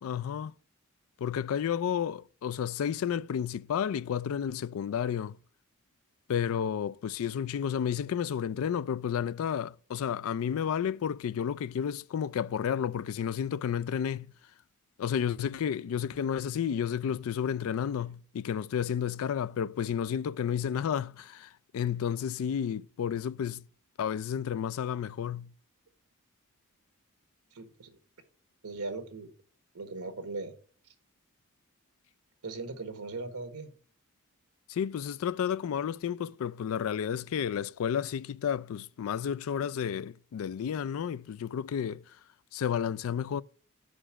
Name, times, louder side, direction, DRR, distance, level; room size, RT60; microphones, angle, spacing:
voice 1, 0.0-0.6 1.2-5.4 6.3-14.3 15.0-23.6 24.0-25.5 34.7-42.2 42.5-43.4, left 8 dB, 70° left, 0.3 m, -31 dB
voice 2, 27.5-28.0 28.6-29.3 29.7-30.5 32.4-33.7, right 3 dB, 85° right, 1.2 m, -39 dB
5.0 x 5.0 x 5.8 m
head